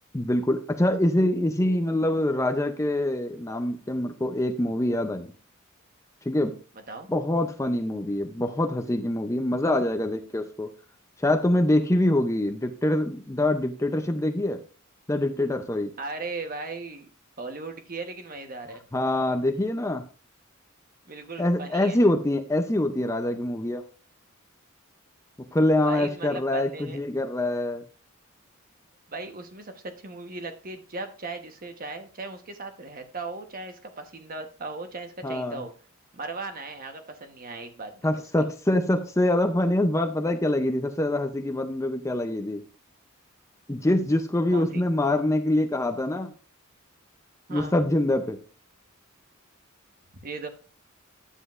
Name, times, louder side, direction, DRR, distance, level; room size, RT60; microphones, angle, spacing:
voice 1, 0.1-5.3 6.3-6.6 7.1-10.7 11.2-14.6 15.1-15.9 18.9-20.0 21.4-23.8 25.5-27.8 35.2-35.6 38.0-42.6 43.7-46.3 47.5-48.4, left 1 dB, 15° left, 5 dB, 0.5 m, -25 dB
voice 2, 16.0-17.1 17.4-18.8 21.1-22.0 25.8-27.0 29.1-35.7 36.1-38.2 44.5-44.9 47.5-47.7 50.2-50.5, right 3 dB, 45° right, 6 dB, 1.1 m, -37 dB
10.0 x 7.5 x 2.5 m, 0.39 s
head